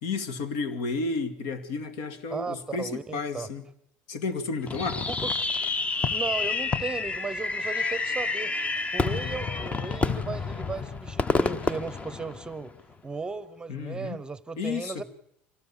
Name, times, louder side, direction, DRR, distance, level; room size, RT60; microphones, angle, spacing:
voice 1, 0.0-3.6 4.1-5.0 13.7-14.2 14.6-15.0, left 4 dB, 75° left, 11 dB, 2.2 m, -32 dB
voice 2, 2.3-3.5 5.1-5.3 6.1-8.5 8.9-12.7 13.0-15.0, right 4 dB, 15° right, 17 dB, 0.8 m, -36 dB
Fireworks, 4.7-12.8, left 3 dB, 25° left, 1.0 m, -29 dB
25.0 x 17.5 x 7.2 m, 0.77 s
supercardioid pair, 105°, 6 cm